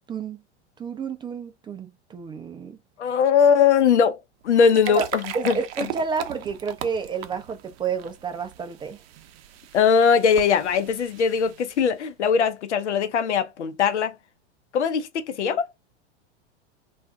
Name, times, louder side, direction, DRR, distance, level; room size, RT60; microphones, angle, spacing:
voice 1, 0.8-2.8 4.9-5.1 5.3-9.0, right 5 dB, 15° right, 0.4 m, -30 dB
voice 2, 3.0-4.2 4.4-5.6 9.7-14.1 14.7-15.7, left 6 dB, 85° left, 0.7 m, -20 dB
sound 1, 4.4-12.0, right 11 dB, 60° right, 0.6 m, -39 dB
2.4 x 2.2 x 3.6 m
hypercardioid pair, 100°, 34 cm